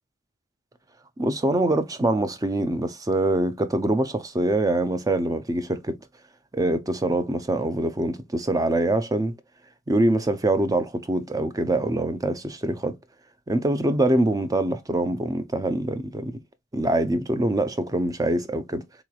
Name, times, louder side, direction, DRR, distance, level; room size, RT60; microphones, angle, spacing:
voice 1, 1.2-6.0 6.5-9.3 9.9-13.0 13.5-16.4 16.7-18.8, right 1 dB, 15° right, 0.5 m, -24 dB
4.0 x 3.0 x 2.3 m
head